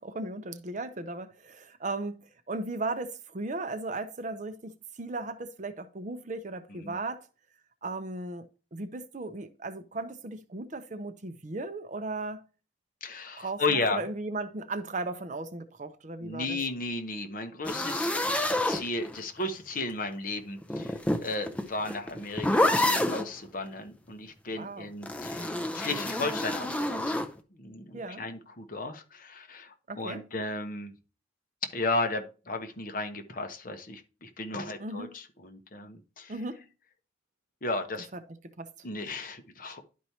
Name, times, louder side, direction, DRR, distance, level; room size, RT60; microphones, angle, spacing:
voice 1, 0.0-7.3 7.8-12.4 13.4-16.6 24.5-24.9 27.9-28.2 29.9-30.2 34.8-35.1 36.3-36.7 38.1-38.2 38.6-38.7, right 2 dB, 40° right, 0.6 m, -36 dB
voice 2, 13.0-14.0 16.2-18.1 18.6-27.2 27.5-30.9 31.6-36.3 37.6-38.1 38.8-39.9, left 2 dB, 45° left, 0.9 m, -34 dB
sound 1, 17.6-19.4 20.6-23.3 25.0-27.3, left 1 dB, 5° left, 0.5 m, -28 dB
11.0 x 4.6 x 2.8 m
head